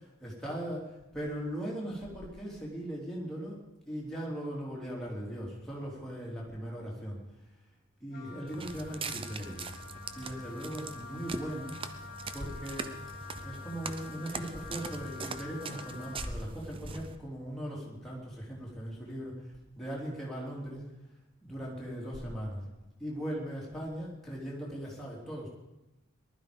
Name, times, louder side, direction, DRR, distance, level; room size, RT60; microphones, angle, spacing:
voice 1, 0.0-7.2 8.0-9.6 10.1-11.8 12.3-12.9 13.4-20.8 21.4-22.6 23.0-25.5, equal, ahead, -5 dB, 3.4 m, -39 dB
Wind instrument woodwind instrument, 8.1-16.4, left 5 dB, 45° left, 1.8 m, -48 dB
Walk footsteps, 8.5-17.2, right 4 dB, 25° right, 0.6 m, -42 dB
19.5 x 12.5 x 5.3 m, 0.96 s
head